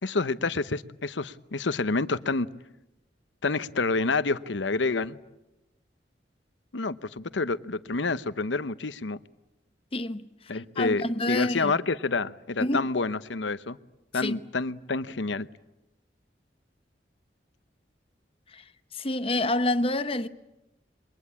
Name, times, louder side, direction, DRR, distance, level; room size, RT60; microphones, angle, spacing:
voice 1, 0.0-2.5 3.4-5.2 6.7-9.2 10.5-13.8 14.1-15.5, left 3 dB, 80° left, 0.9 m, -28 dB
voice 2, 9.9-10.3 10.8-11.7 12.6-12.9 14.2-14.4 18.5-18.6 18.9-20.3, left 1 dB, 30° left, 0.9 m, -27 dB
27.5 x 23.0 x 8.7 m
head